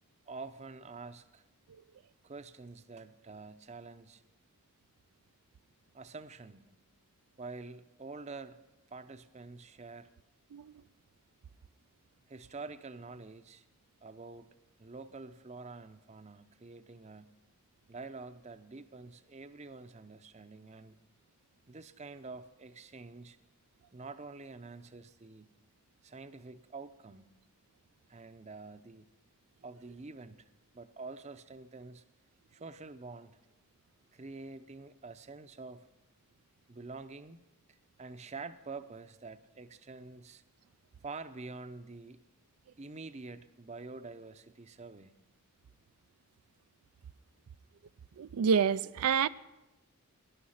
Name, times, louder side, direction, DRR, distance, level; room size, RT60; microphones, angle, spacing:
voice 1, 0.3-1.4 2.2-4.2 5.9-6.6 7.4-8.6 8.9-10.1 12.3-13.6 14.0-14.5 14.8-17.3 17.9-21.0 21.7-23.4 23.9-25.5 26.0-27.3 28.1-29.1 29.6-32.0 32.5-33.4 34.1-35.9 36.7-37.4 37.7-40.4 41.0-42.2 42.8-45.1, right 3 dB, 30° right, 0.6 m, -47 dB
voice 2, 48.2-49.3, right 6 dB, 90° right, 0.4 m, -28 dB
18.0 x 11.0 x 5.7 m
head